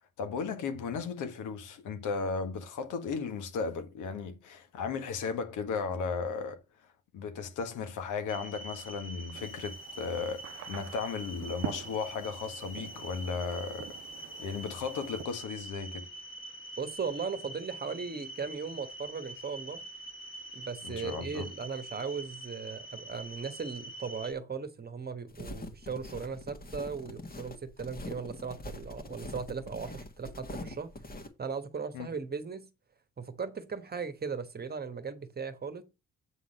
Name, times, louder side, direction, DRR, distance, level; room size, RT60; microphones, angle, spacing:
voice 1, 0.2-6.6 7.1-13.9 14.2-16.1 20.8-21.5 31.9-32.1, left 5 dB, 85° left, 1.5 m, -35 dB
sound 1, 8.3-24.3, right 1 dB, 45° left, 2.0 m, -45 dB
sound 2, 9.3-15.2, right 11 dB, 60° right, 0.7 m, -45 dB
voice 2, 16.8-19.8 20.5-30.9 31.4-32.7 33.2-35.8, right 5 dB, 30° right, 1.3 m, -37 dB
sound 3, 25.3-31.3, left 1 dB, 30° left, 1.6 m, -43 dB
8.1 x 3.9 x 6.5 m
cardioid pair, 90°, 30 cm